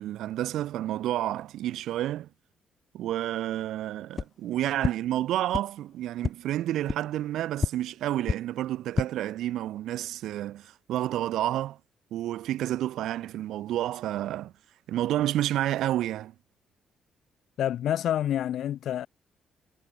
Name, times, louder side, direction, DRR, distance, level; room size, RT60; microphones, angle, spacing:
voice 1, 0.0-2.3 2.9-11.8 12.1-14.5 14.9-16.3, right 13 dB, 80° right, 2.3 m, -30 dB
sound 1, 4.1-4.3 4.8-4.9 5.5-5.6 6.2-6.3 6.9-7.0 7.6-7.7 8.2-8.4 8.8-9.1, left 5 dB, 40° left, 1.9 m, -27 dB
voice 2, 17.6-19.1, left 11 dB, 70° left, 2.1 m, -28 dB
cardioid pair, 90°, 0 cm